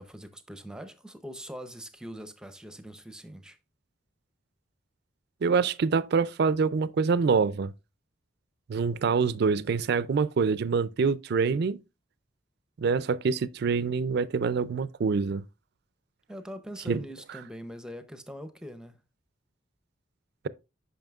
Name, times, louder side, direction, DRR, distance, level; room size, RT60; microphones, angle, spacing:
voice 1, 0.0-3.6 16.3-19.0, equal, 5° right, 0.6 m, -42 dB
voice 2, 5.4-7.7 8.7-11.8 12.8-15.4 16.9-17.0, right 5 dB, 55° right, 0.4 m, -25 dB
9.0 x 5.7 x 2.3 m
head